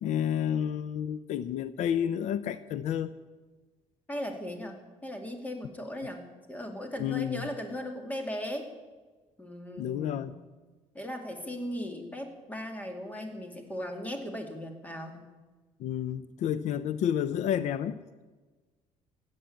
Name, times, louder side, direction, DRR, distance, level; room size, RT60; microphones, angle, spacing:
voice 1, 0.0-3.1 7.0-7.5 9.8-10.3 15.8-18.0, left 9 dB, 70° left, 15 dB, 0.6 m, -30 dB
voice 2, 4.1-8.7 9.4-10.3 10.9-15.2, equal, 10° left, 4 dB, 2.4 m, -38 dB
16.0 x 9.2 x 8.6 m, 1.3 s
cardioid pair, 130°, 13 cm